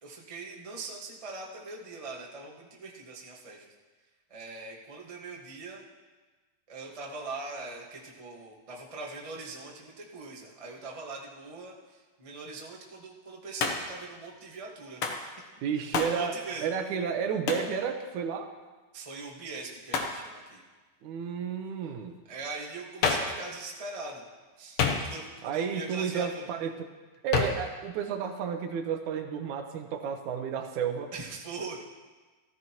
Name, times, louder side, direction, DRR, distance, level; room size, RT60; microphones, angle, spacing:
voice 1, 0.0-3.7 4.3-5.8 6.7-15.3 16.0-16.7 18.9-20.6 22.3-24.2 24.6-26.5 31.1-31.8, right 3 dB, 55° right, -2 dB, 0.3 m, -41 dB
Hands, 13.6-14.0 15.0-15.3 15.9-16.2 17.5-17.7 19.9-20.2 23.0-23.4 24.8-25.4 27.3-27.7, left 5 dB, 65° left, 1.5 m, -28 dB
voice 2, 15.6-18.5 21.0-22.2 25.4-26.9 27.2-31.1, right 7 dB, 75° right, 6 dB, 2.2 m, -32 dB
15.0 x 14.5 x 3.0 m, 1.3 s
omnidirectional pair, 3.6 m